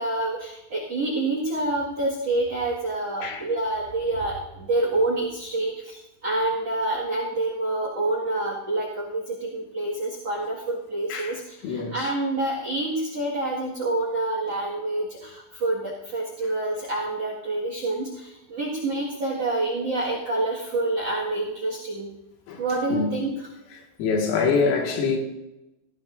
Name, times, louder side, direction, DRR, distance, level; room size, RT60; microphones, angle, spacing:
voice 1, 0.0-22.1 22.6-23.5, right 2 dB, 55° right, 1.8 m, -27 dB
voice 2, 11.6-12.1 22.5-22.6 22.9-23.1 24.0-25.2, left 5 dB, 90° left, 4.6 m, -24 dB
18.0 x 15.0 x 2.6 m
omnidirectional pair, 5.8 m